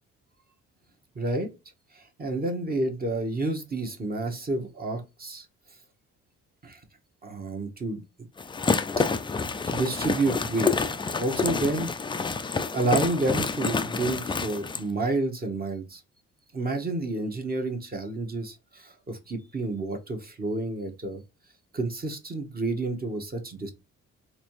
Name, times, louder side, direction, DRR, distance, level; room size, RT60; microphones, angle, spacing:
voice 1, 1.1-1.5 1.9-5.5 6.6-6.8 7.2-8.0 9.6-10.9 11.2-11.9 12.7-16.0 16.5-21.2 21.7-23.7, right 2 dB, 30° right, 4 dB, 1.0 m, -29 dB
sound 1, 8.4-14.8, left 4 dB, 15° left, 0.3 m, -28 dB
4.2 x 2.6 x 3.0 m, 0.26 s
cardioid pair, 90°, 30 cm